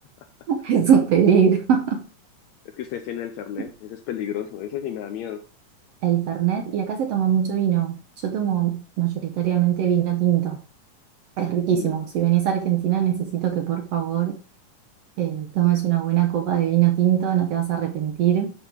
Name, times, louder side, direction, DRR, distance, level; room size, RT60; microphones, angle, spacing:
voice 1, 0.5-2.0 3.6-3.7 6.0-8.0 8.2-10.6 11.4-14.3 15.2-18.5, right 9 dB, 70° right, 4 dB, 1.5 m, -21 dB
voice 2, 2.8-5.4 11.7-12.0, left 10 dB, 80° left, 8 dB, 1.7 m, -32 dB
11.0 x 3.7 x 4.5 m, 0.39 s
omnidirectional pair, 3.7 m